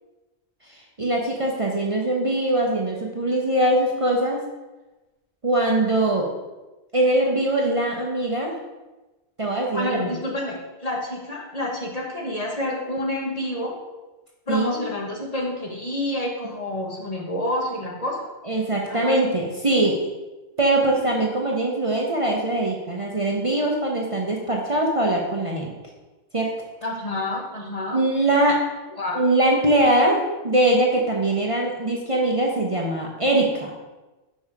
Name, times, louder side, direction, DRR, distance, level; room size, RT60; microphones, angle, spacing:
voice 1, 0.8-4.4 5.4-6.3 6.9-8.6 9.4-10.2 14.5-14.8 18.4-20.1 20.6-25.7 26.3-26.5 27.9-28.6 29.1-33.7, right 1 dB, 35° right, -1 dB, 0.8 m, -22 dB
voice 2, 9.7-13.8 14.5-18.3 18.9-19.3 26.8-28.0 29.0-29.2, left 1 dB, 35° left, -1 dB, 1.1 m, -28 dB
5.5 x 5.4 x 4.7 m, 1.1 s
omnidirectional pair, 1.1 m